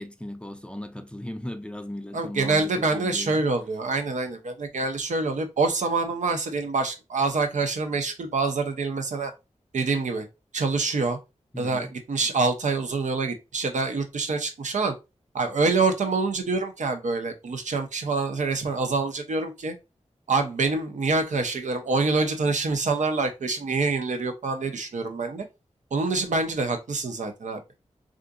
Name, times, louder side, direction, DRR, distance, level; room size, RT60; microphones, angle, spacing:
voice 1, 0.0-3.4 11.5-11.9, left 1 dB, 10° left, 0.4 m, -37 dB
voice 2, 2.1-9.3 9.7-10.3 10.5-11.2 11.6-14.9 15.3-19.7 20.3-25.5 25.9-27.6, right 3 dB, 85° right, 0.6 m, -26 dB
3.7 x 2.5 x 2.4 m
wide cardioid pair, 85°, 12 cm